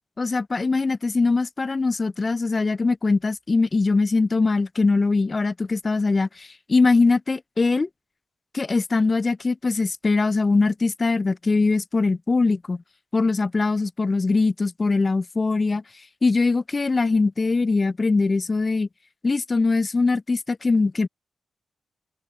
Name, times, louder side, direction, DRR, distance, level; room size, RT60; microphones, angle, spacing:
voice 1, 0.2-7.9 8.5-12.8 13.1-15.8 16.2-18.9 19.2-21.1, left 3 dB, 40° left, 0.4 m, -22 dB
supercardioid pair, 45°, 0 cm